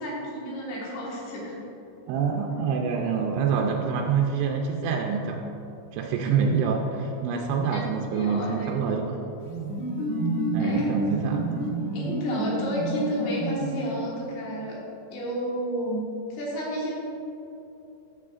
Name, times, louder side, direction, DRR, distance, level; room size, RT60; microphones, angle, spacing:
voice 1, 0.0-1.7 7.7-7.8 8.1-8.9 10.6-11.0 11.9-16.9, equal, 75° left, -5 dB, 3.8 m, -31 dB
voice 2, 2.1-5.5 5.9-9.1 10.5-11.5, right 6 dB, 85° right, 1 dB, 2.3 m, -26 dB
sound 1, 9.4-14.3, right 1 dB, 45° left, 1.8 m, -29 dB
11.5 x 7.6 x 2.5 m, 2.9 s
omnidirectional pair, 5.3 m